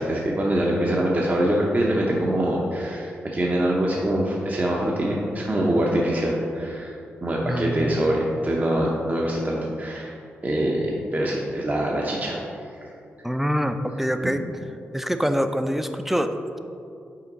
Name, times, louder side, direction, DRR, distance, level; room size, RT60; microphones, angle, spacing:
voice 1, 0.0-6.9 7.2-10.1 10.4-12.4 14.2-14.3, right 1 dB, 35° right, -2 dB, 0.8 m, -24 dB
voice 2, 7.4-8.0 13.2-14.4 14.9-16.6, equal, 5° right, 8 dB, 0.4 m, -25 dB
5.7 x 4.5 x 3.9 m, 2.6 s
cardioid pair, 50°, 5 cm